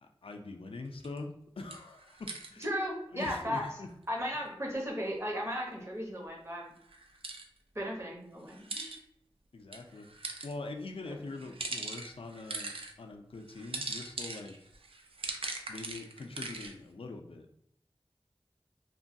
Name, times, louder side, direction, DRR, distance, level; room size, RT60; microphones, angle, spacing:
voice 1, 0.0-2.6 3.1-3.9 9.5-10.1 10.4-14.6 15.7-17.5, left 3 dB, 80° left, 5 dB, 0.4 m, -43 dB
sound 1, 1.0-1.2 1.7-2.7 6.9-7.5 8.5-9.0 9.7-10.5 11.3-12.9 13.5-16.7, right 3 dB, 80° right, 0.4 m, -40 dB
voice 2, 2.6-3.6 4.1-6.7 7.7-9.0 11.1-11.2, equal, 30° right, -1 dB, 0.8 m, -36 dB
3.0 x 2.2 x 2.6 m, 0.73 s
wide cardioid pair, 55°, 9 cm